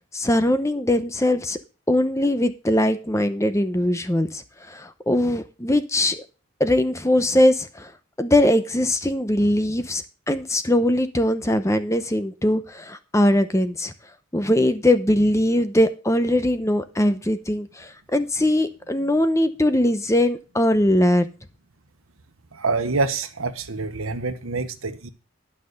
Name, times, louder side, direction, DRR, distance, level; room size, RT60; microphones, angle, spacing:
voice 1, 0.1-1.6 1.9-6.2 6.6-7.9 8.2-13.9 14.3-21.3, left 1 dB, 15° left, 0.8 m, -21 dB
voice 2, 22.5-25.1, right 3 dB, 75° right, 1.2 m, -26 dB
12.0 x 5.8 x 6.6 m
head